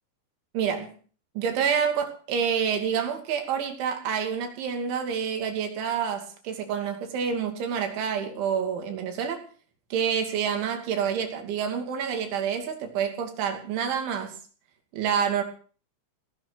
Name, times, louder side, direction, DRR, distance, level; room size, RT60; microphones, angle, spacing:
voice 1, 0.5-0.9 1.4-9.4 9.9-14.3 14.9-15.4, right 7 dB, 75° right, 5 dB, 5.0 m, -28 dB
18.5 x 11.5 x 6.2 m, 0.43 s
omnidirectional pair, 5.4 m